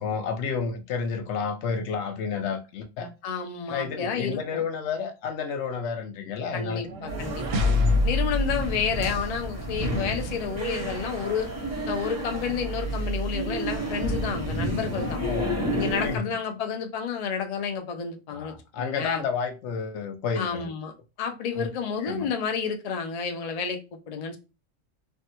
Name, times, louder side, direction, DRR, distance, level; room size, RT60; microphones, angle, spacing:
voice 1, 0.0-3.1 3.7-6.8 7.7-8.0 15.2-15.7 16.0-16.3 18.3-20.7 21.6-21.7 22.0-22.3, left 5 dB, 70° left, 0.8 m, -31 dB
voice 2, 3.2-4.6 6.5-7.5 8.0-11.5 11.9-15.2 15.7-19.2 20.4-20.9 21.2-23.8 24.1-24.4, left 6 dB, 85° left, 0.3 m, -30 dB
sound 1, 6.7-9.8, left 2 dB, 90° right, 1.0 m, -27 dB
sound 2, 7.1-16.2, right 1 dB, 15° right, 0.5 m, -31 dB
3.3 x 2.1 x 2.8 m
omnidirectional pair, 1.3 m